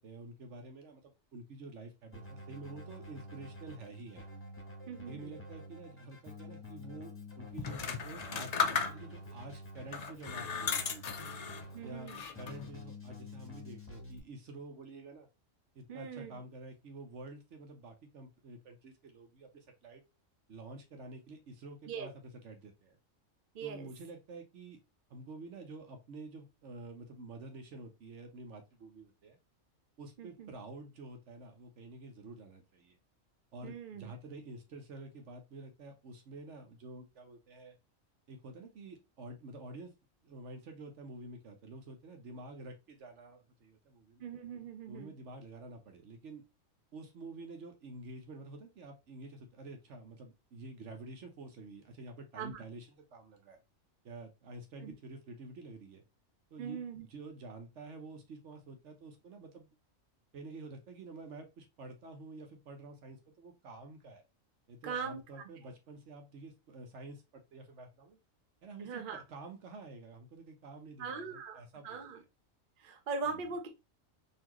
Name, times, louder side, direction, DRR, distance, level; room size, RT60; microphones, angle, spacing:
voice 1, 0.0-4.3 5.1-11.2 11.8-12.1 12.4-15.3 15.7-20.0 20.5-22.1 22.4-23.0 23.6-24.8 25.1-29.4 30.0-33.0 33.5-37.7 38.3-39.9 40.2-44.3 44.9-46.4 46.9-53.6 54.0-56.0 56.5-59.7 60.3-64.2 64.7-68.2 68.6-72.0 73.3-73.5, right 2 dB, 65° right, 5 dB, 1.1 m, -49 dB
Keyboard (musical), 2.1-14.2, left 1 dB, 10° left, 0.9 m, -49 dB
voice 2, 4.9-5.4 11.7-12.2 15.9-16.4 21.9-22.1 23.5-23.9 30.2-30.5 33.6-34.1 44.2-45.1 52.4-52.6 54.8-54.9 56.6-57.1 64.8-65.2 68.8-69.2 71.0-72.2 72.8-73.7, right 5 dB, 50° right, 4 dB, 0.8 m, -41 dB
sound 1, 7.6-9.3 9.9-11.7 12.1-12.7, left 5 dB, 75° left, 0.3 m, -35 dB
4.1 x 2.8 x 2.9 m, 0.26 s
omnidirectional pair, 1.4 m